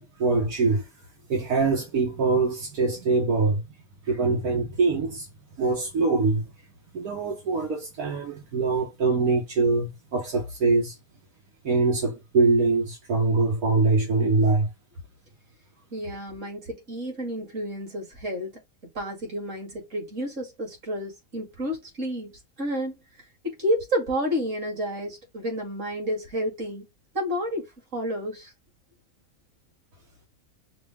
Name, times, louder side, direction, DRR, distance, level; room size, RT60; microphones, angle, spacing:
voice 1, 0.2-0.9 1.3-3.6 4.1-5.3 5.6-6.4 6.9-10.9 11.6-14.7, right 3 dB, 80° right, 1.8 m, -23 dB
voice 2, 15.9-18.5 18.9-22.3 22.6-23.0 23.4-26.8 27.1-27.7 27.9-28.5, equal, 55° right, 2.7 m, -30 dB
6.0 x 2.4 x 3.5 m
omnidirectional pair, 1.6 m